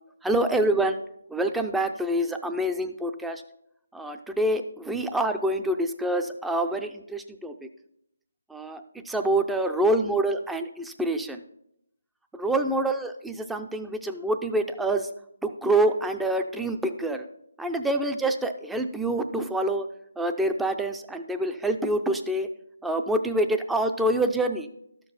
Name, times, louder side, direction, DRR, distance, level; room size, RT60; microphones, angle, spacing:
voice 1, 0.2-1.0 1.3-3.4 3.9-7.7 8.5-11.4 12.3-15.1 15.4-17.2 17.6-19.9 20.2-22.5 22.8-24.7, right 1 dB, 5° right, 7 dB, 0.5 m, -26 dB
12.5 x 6.8 x 4.1 m, 0.77 s
figure-of-eight pair, 155°, 0 cm